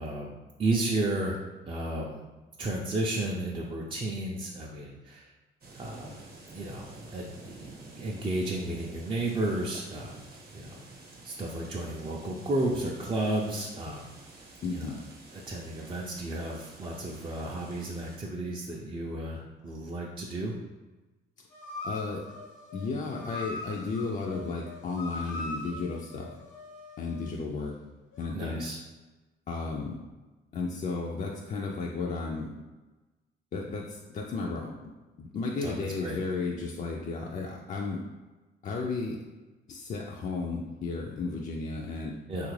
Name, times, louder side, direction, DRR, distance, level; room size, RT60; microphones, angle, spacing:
voice 1, 0.0-1.4 1.7-2.2 2.6-5.3 5.8-6.2 6.5-10.8 11.2-14.1 14.7-14.9 15.3-20.5 28.3-28.8 35.6-36.2 42.3-42.5, right 2 dB, 25° right, -3 dB, 0.4 m, -33 dB
sound 1, 5.6-18.2, right 2 dB, 50° right, 0.8 m, -50 dB
voice 2, 14.6-15.0 21.8-22.3 22.7-26.3 27.0-27.7 28.2-28.7 29.5-30.0 30.5-32.5 33.5-34.9 35.2-38.0 38.6-39.2 39.7-42.2, left 4 dB, 40° left, -1 dB, 0.4 m, -33 dB
sound 2, 21.5-27.4 28.1-28.2, left 2 dB, 80° left, 0.8 m, -41 dB
3.3 x 2.4 x 3.1 m, 1.2 s
cardioid pair, 90°, 20 cm